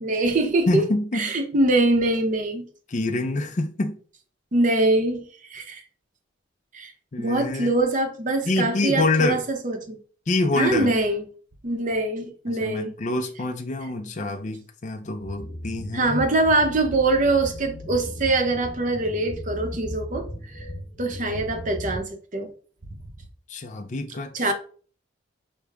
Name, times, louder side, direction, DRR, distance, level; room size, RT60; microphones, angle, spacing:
voice 1, 0.0-0.8 1.1-2.7 4.5-5.8 6.7-6.9 7.2-10.0 10.6-11.2 11.6-12.9 15.9-20.7 21.0-22.5 24.3-24.5, right 2 dB, 45° right, 0.8 m, -23 dB
voice 2, 0.7-1.2 2.9-4.0 7.1-7.7 8.5-9.4 10.3-10.9 12.5-16.2 23.5-24.5, left 2 dB, 40° left, 0.5 m, -26 dB
sound 1, 15.2-22.0, left 1 dB, 20° left, 1.4 m, -37 dB
6.5 x 2.2 x 3.4 m
head